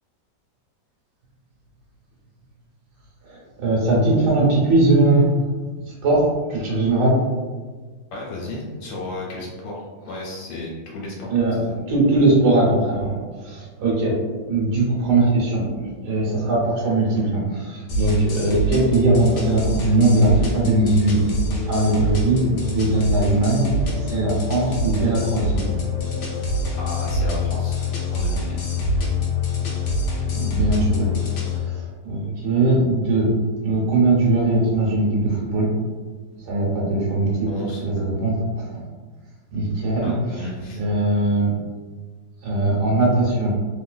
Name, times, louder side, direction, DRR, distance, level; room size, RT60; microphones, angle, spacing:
voice 1, 3.2-5.3 5.8-7.2 11.3-14.2 14.5-21.3 21.7-25.6 29.6-29.7 30.3-31.1 31.5-33.3 33.6-35.7 36.4-37.5 37.8-38.8 39.5-41.5 42.4-43.5, right 2 dB, 65° right, -4 dB, 1.4 m, -20 dB
voice 2, 8.1-11.3 11.6-11.7 26.8-27.8 28.1-28.6 37.5-37.8 40.0-40.8, left 2 dB, 90° left, -3 dB, 1.6 m, -33 dB
sound 1, 17.9-31.6, left 2 dB, 75° left, 1.2 m, -25 dB
3.0 x 2.9 x 2.3 m, 1.4 s
omnidirectional pair, 2.0 m